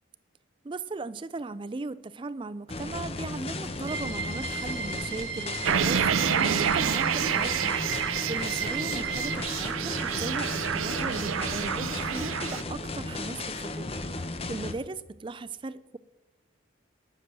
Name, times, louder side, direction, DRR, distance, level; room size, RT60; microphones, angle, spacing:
voice 1, 0.6-16.0, right 3 dB, 25° right, 16 dB, 0.4 m, -38 dB
sound 1, 2.7-14.7, left 2 dB, 30° left, 0.8 m, -35 dB
sound 2, 3.9-9.4, right 6 dB, 65° right, 1.1 m, -35 dB
sound 3, 5.6-12.6, right 8 dB, 85° right, 0.5 m, -28 dB
12.5 x 6.8 x 7.4 m, 1.1 s
head